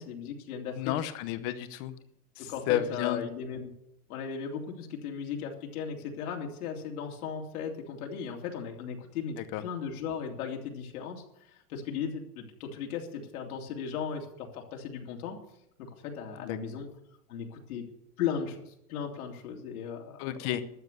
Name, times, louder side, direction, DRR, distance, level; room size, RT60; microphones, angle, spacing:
voice 1, 0.0-1.0 2.4-3.7 4.1-15.4 15.8-16.9 17.3-17.9 18.2-20.4, left 7 dB, 75° left, 1 dB, 2.8 m, -37 dB
voice 2, 0.8-1.9 2.4-3.2 9.5-9.6 16.4-16.6 20.2-20.6, left 12 dB, 30° left, 12 dB, 0.8 m, -31 dB
12.5 x 7.5 x 8.0 m, 0.77 s
supercardioid pair, 165°, 45 cm